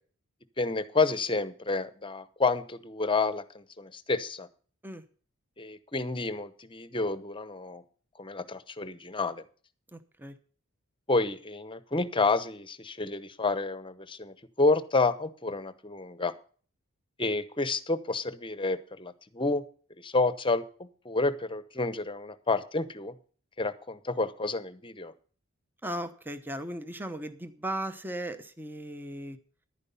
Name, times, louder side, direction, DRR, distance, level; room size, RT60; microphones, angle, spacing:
voice 1, 0.6-4.5 5.6-7.8 8.2-9.4 11.1-16.3 17.2-19.6 20.0-23.1 23.6-25.1, left 3 dB, 25° left, 13 dB, 0.9 m, -29 dB
voice 2, 9.9-10.3 25.8-29.4, right 1 dB, 10° right, 10 dB, 0.9 m, -37 dB
11.0 x 9.8 x 5.4 m, 0.42 s
head